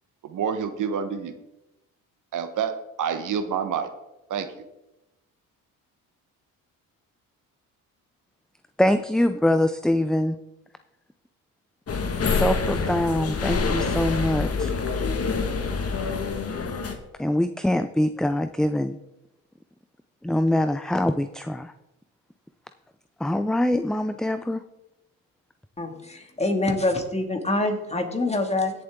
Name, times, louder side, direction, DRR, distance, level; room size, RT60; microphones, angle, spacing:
voice 1, 0.2-1.4 2.3-3.9 4.3-4.5, right 7 dB, 60° right, 9 dB, 1.2 m, -28 dB
voice 2, 8.8-10.4 12.3-14.7 17.2-19.0 20.2-21.7 23.2-24.6, left 1 dB, ahead, 10 dB, 0.4 m, -24 dB
sound 1, 11.9-16.9, left 4 dB, 45° left, 1.7 m, -26 dB
voice 3, 25.8-28.7, left 2 dB, 20° left, 4 dB, 2.1 m, -25 dB
16.5 x 7.5 x 3.7 m, 0.93 s
supercardioid pair, 75°, 35 cm